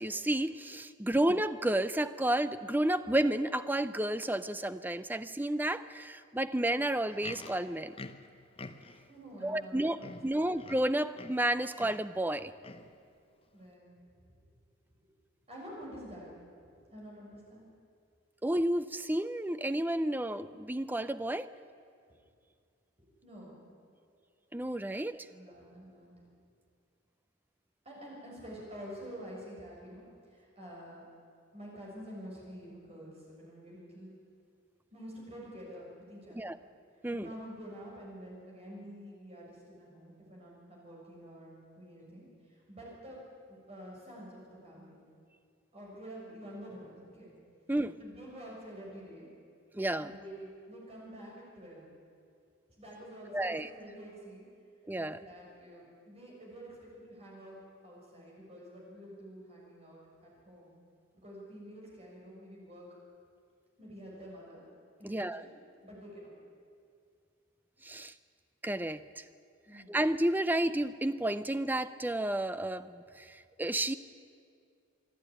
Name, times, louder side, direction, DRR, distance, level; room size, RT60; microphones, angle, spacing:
voice 1, 0.0-7.9 9.4-12.5 18.4-21.5 24.5-25.3 36.3-36.6 37.0-37.3 47.7-48.0 49.7-50.1 53.3-53.7 54.9-55.2 65.0-65.4 67.8-68.1 68.6-69.2 69.7-73.9, right 1 dB, 10° right, 12 dB, 0.5 m, -31 dB
Livestock farm animals working animals, 6.9-9.1 9.7-9.8 10.0-11.5 11.8-12.1 12.6-13.0 13.6-13.7, left 3 dB, 30° left, 0.8 m, -47 dB
voice 2, 9.1-10.5 13.5-14.0 15.5-16.3 16.9-17.6 23.2-23.7 24.9-26.1 27.8-31.1 31.5-34.1 34.9-36.5 37.1-43.2 43.5-45.0 45.7-47.3 48.0-49.3 50.0-51.9 52.8-54.5 54.9-60.7 61.2-62.9 63.8-64.6 65.0-65.5 65.8-66.3 69.6-70.0, equal, 30° right, -4 dB, 6.8 m, -48 dB
27.0 x 11.0 x 9.9 m, 2.3 s
head